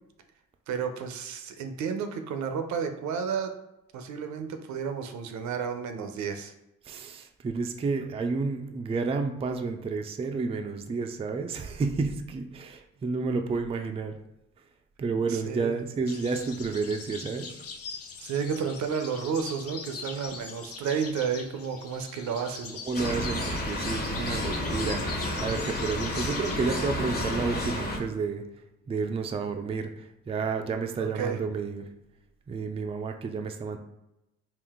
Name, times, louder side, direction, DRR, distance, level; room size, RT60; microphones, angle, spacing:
voice 1, 0.7-3.6 3.9-6.5 15.3-15.8 18.2-22.8 31.0-31.4, right 6 dB, 70° right, 7 dB, 0.6 m, -32 dB
voice 2, 6.9-14.1 15.0-17.5 22.9-28.4 28.9-31.9 32.5-33.8, right 4 dB, 20° right, 5 dB, 0.3 m, -30 dB
sound 1, 16.1-26.7, left 5 dB, 50° left, 0.6 m, -42 dB
sound 2, 22.9-28.0, left 1 dB, 30° left, 1.0 m, -31 dB
3.7 x 2.4 x 3.5 m, 0.89 s
cardioid pair, 90°, 30 cm